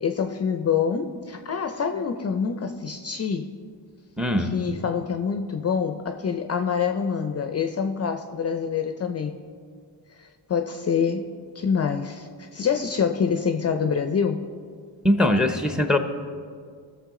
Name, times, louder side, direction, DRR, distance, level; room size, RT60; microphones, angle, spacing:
voice 1, 0.0-3.5 4.4-9.4 10.1-14.5, left 6 dB, 35° left, 7 dB, 0.5 m, -26 dB
voice 2, 4.2-4.5 15.0-16.0, left 1 dB, ahead, 7 dB, 0.7 m, -21 dB
17.5 x 6.9 x 3.7 m, 2.1 s
cardioid pair, 120°, 42 cm